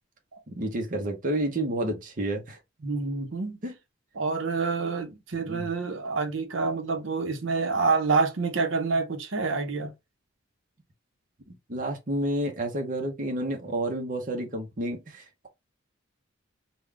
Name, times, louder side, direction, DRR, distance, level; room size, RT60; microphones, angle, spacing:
voice 1, 0.5-2.6 3.6-3.7 5.3-5.7 11.7-15.5, right 1 dB, 45° right, 0.7 m, -30 dB
voice 2, 2.8-3.6 4.2-9.9, right 4 dB, 75° right, 0.8 m, -27 dB
3.7 x 2.3 x 3.3 m
head